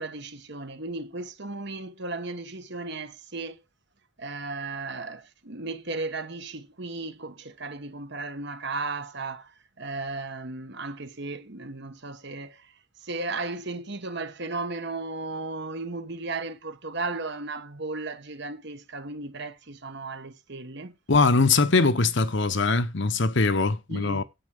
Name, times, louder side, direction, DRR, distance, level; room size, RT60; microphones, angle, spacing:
voice 1, 0.0-3.6 4.2-21.0 23.9-24.2, right 3 dB, 50° right, 1.3 m, -35 dB
voice 2, 21.1-24.2, left 3 dB, 55° left, 0.9 m, -22 dB
9.6 x 8.7 x 5.0 m
head